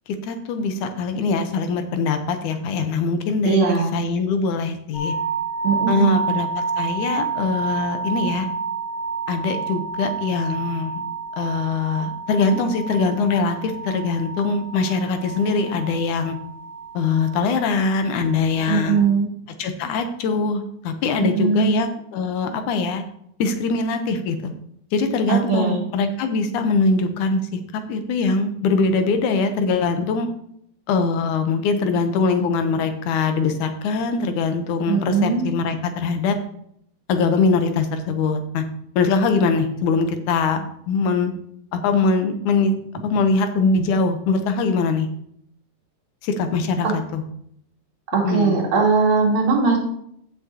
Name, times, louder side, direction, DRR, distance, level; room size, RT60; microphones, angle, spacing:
voice 1, 0.2-5.1 5.9-8.5 9.3-11.0 11.4-16.4 16.9-19.0 19.6-23.0 23.4-24.5 24.9-27.6 27.9-30.3 30.9-36.4 37.1-38.6 39.0-41.4 41.7-42.7 43.0-45.1 46.2-47.2 48.2-48.6, left 4 dB, 90° left, 7 dB, 2.4 m, -22 dB
voice 2, 3.5-3.9 5.6-6.2 18.7-19.3 21.2-21.8 25.3-25.8 34.9-35.4 46.8-46.9 48.1-49.8, right 5 dB, 70° right, -2 dB, 3.6 m, -19 dB
sound 1, 4.9-19.0, right 5 dB, 45° left, 2.9 m, -30 dB
15.0 x 6.3 x 2.9 m, 0.71 s
omnidirectional pair, 3.4 m